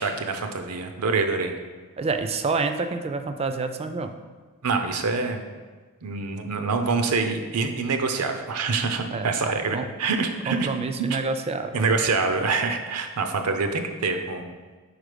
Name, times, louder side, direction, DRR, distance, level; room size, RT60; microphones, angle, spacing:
voice 1, 0.0-1.6 4.6-5.4 6.0-10.7 11.7-14.5, right 4 dB, 90° right, 6 dB, 0.6 m, -25 dB
voice 2, 2.0-4.1 9.1-9.3 9.7-9.9 10.5-11.9, right 4 dB, 25° right, 8 dB, 0.3 m, -28 dB
4.8 x 4.2 x 5.1 m, 1.4 s
head